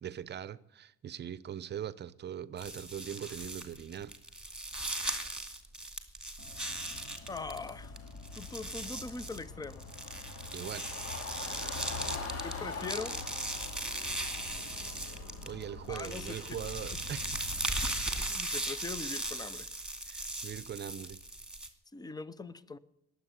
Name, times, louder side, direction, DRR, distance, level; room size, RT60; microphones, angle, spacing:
voice 1, 0.0-4.1 10.5-10.9 15.4-17.3 20.1-21.2, right 9 dB, 35° right, 0.8 m, -41 dB
sound 1, 2.6-7.7 8.0-15.6 15.9-21.7, right 2 dB, 5° right, 2.3 m, -38 dB
sound 2, 6.4-18.0, left 3 dB, 55° left, 2.6 m, -43 dB
voice 2, 7.3-8.0 8.4-9.9 12.4-13.2 15.9-16.6 18.2-19.7 21.9-22.8, left 4 dB, 15° left, 0.7 m, -41 dB
20.5 x 8.1 x 8.2 m
cardioid pair, 115°, 29 cm